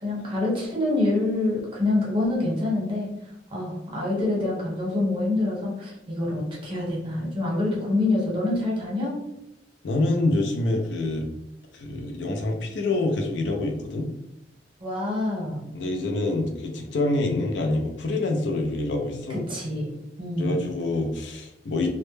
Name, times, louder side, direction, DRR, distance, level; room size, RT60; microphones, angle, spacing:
voice 1, 0.0-3.1 3.5-9.2 14.8-15.7 19.5-20.7, left 2 dB, 30° right, -5 dB, 0.9 m, -26 dB
voice 2, 9.8-11.3 11.7-14.1 15.7-19.4 20.4-21.9, left 2 dB, 75° left, 3 dB, 0.4 m, -26 dB
2.1 x 2.1 x 3.1 m, 0.86 s
head